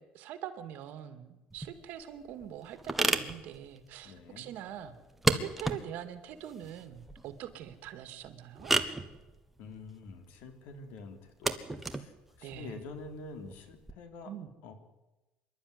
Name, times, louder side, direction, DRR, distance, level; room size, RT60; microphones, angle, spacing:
voice 1, 0.0-4.9 5.3-8.7 12.4-12.8 14.3-14.5, right 10 dB, 70° right, 11 dB, 2.1 m, -43 dB
sound 1, 1.5-13.9, right 2 dB, 5° right, 1.4 m, -35 dB
voice 2, 4.0-4.5 9.6-14.3 14.6-14.7, left 3 dB, 75° left, 8 dB, 3.5 m, -47 dB
25.0 x 12.0 x 9.8 m, 1.0 s
cardioid pair, 135°, 3 cm